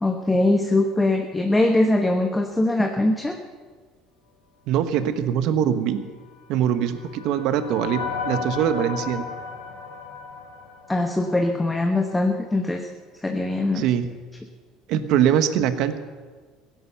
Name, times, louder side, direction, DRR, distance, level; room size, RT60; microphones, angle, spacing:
voice 1, 0.0-3.4 10.9-12.9 13.2-13.8, left 2 dB, 10° left, 4 dB, 1.1 m, -22 dB
voice 2, 4.7-6.0 6.5-9.2 13.8-14.1 14.9-16.0, right 9 dB, 70° right, 10 dB, 1.1 m, -22 dB
sound 1, 6.3-11.6, left 5 dB, 90° left, 2.5 m, -34 dB
16.0 x 11.0 x 6.9 m, 1.4 s
supercardioid pair, 110°, 0 cm